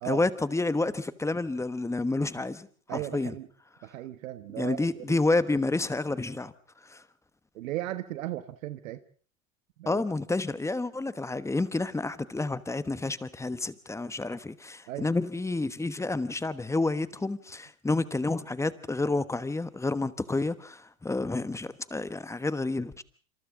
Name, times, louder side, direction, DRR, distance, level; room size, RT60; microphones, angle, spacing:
voice 1, 0.0-3.3 4.6-6.5 6.9-7.0 9.9-23.0, left 2 dB, 5° left, 1.2 m, -29 dB
voice 2, 2.9-3.5 3.8-5.2 7.5-9.0 9.8-10.0 14.9-15.1, right 14 dB, 70° right, 1.5 m, -36 dB
27.0 x 26.5 x 3.8 m
hypercardioid pair, 105°, 42 cm